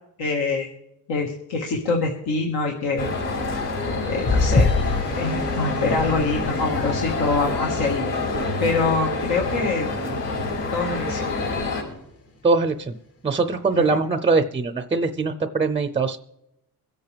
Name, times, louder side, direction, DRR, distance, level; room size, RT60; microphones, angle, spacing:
voice 1, 0.2-0.7 1.1-3.1 4.1-4.7 5.2-8.0 8.6-9.9 10.7-11.3 13.8-13.9, left 3 dB, 80° left, 0 dB, 1.8 m, -24 dB
sound 1, 3.0-11.8, left 3 dB, 60° left, 5.6 m, -27 dB
sound 2, 4.3-8.9 9.5-9.8 10.1-10.2, left 3 dB, 40° left, 1.1 m, -26 dB
voice 2, 12.4-13.0 13.2-16.2, right 4 dB, 15° right, 9 dB, 0.5 m, -22 dB
23.5 x 8.3 x 3.4 m, 0.88 s
cardioid pair, 130°, 38 cm